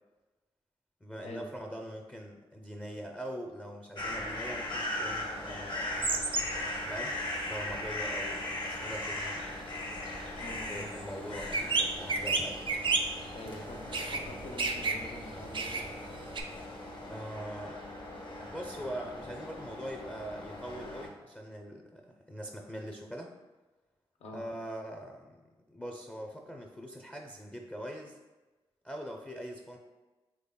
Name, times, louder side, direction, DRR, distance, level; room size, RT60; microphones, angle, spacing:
voice 1, 1.0-6.1 6.9-7.2 7.4-9.6 10.7-12.7 17.0-17.8 18.4-23.3 24.3-25.4 25.7-28.2 28.8-29.8, equal, 10° left, 1 dB, 0.4 m, -42 dB
sound 1, 4.0-21.1, left 1 dB, 45° left, 0.8 m, -39 dB
sound 2, 6.0-6.7 7.0-16.4, right 3 dB, 50° right, 0.4 m, -34 dB
voice 2, 10.4-10.9 13.2-15.8 24.2-24.5, left 1 dB, 70° left, 1 dB, 0.5 m, -45 dB
3.6 x 3.3 x 2.2 m, 1.2 s
supercardioid pair, 45°, 11 cm